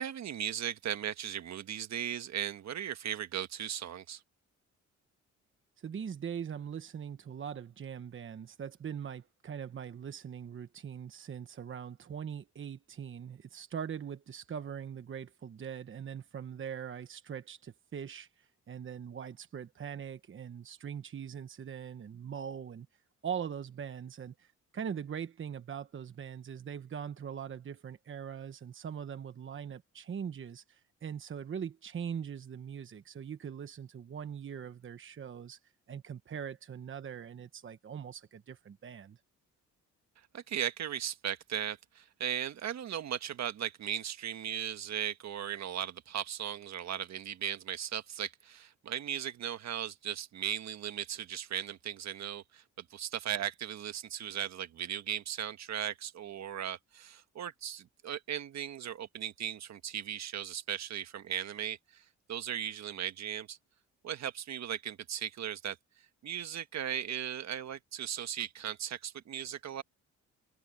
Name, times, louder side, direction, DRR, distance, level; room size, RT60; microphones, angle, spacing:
voice 1, 0.0-4.2 40.3-63.6 64.0-65.8 66.2-69.8, right 10 dB, 60° right, 1.6 m, -37 dB
voice 2, 5.8-22.9 23.2-35.6 35.9-39.2, right 8 dB, 40° right, 1.1 m, -41 dB
cardioid pair, 90°, 30 cm